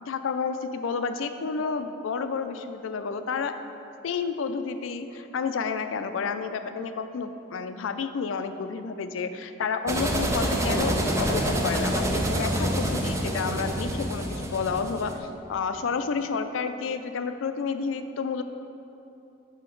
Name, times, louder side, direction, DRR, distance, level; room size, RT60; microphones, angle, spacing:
voice 1, 0.0-3.5 4.0-18.4, left 5 dB, 80° left, 9 dB, 0.4 m, -30 dB
sound 1, 9.9-15.2, right 1 dB, 15° right, 0.5 m, -27 dB
5.9 x 5.7 x 4.5 m, 2.8 s
head